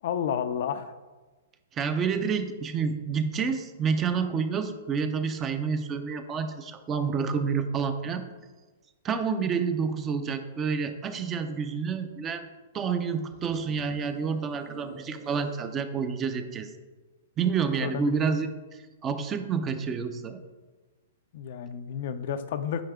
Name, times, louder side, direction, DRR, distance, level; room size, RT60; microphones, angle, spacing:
voice 1, 0.0-0.9 17.8-18.2 21.3-22.8, left 8 dB, 60° left, 10 dB, 0.5 m, -31 dB
voice 2, 1.7-8.3 9.0-12.5 12.7-16.7 17.4-20.4, right 6 dB, 20° right, 9 dB, 0.6 m, -29 dB
sound 1, 13.2-15.8, right 4 dB, 45° right, 1.2 m, -48 dB
8.9 x 4.8 x 3.6 m, 1.3 s
hypercardioid pair, 140°, 0 cm